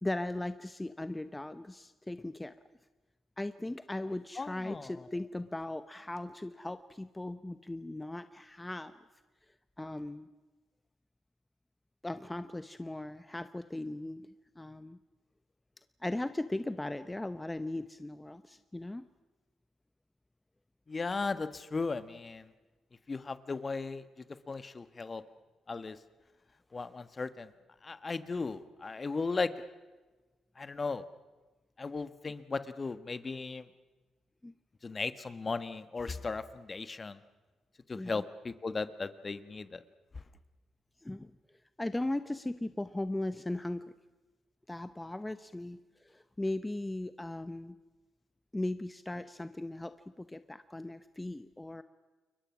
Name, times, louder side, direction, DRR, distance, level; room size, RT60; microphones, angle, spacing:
voice 1, 0.0-2.5 3.4-8.9 9.8-10.3 12.0-14.3 14.6-15.0 16.0-19.0 34.4-34.5 37.9-38.2 41.0-41.3 41.8-43.8 44.7-47.8 48.5-51.8, left 1 dB, 15° left, 12 dB, 0.9 m, -38 dB
voice 2, 4.4-4.9 20.9-22.5 23.1-24.0 24.5-25.2 25.7-26.0 26.7-27.5 27.8-29.5 30.6-31.0 31.8-33.6 34.8-37.2 37.9-39.8, left 4 dB, 40° left, 13 dB, 1.3 m, -36 dB
30.0 x 22.0 x 6.1 m, 1.2 s
hypercardioid pair, 45°, 0 cm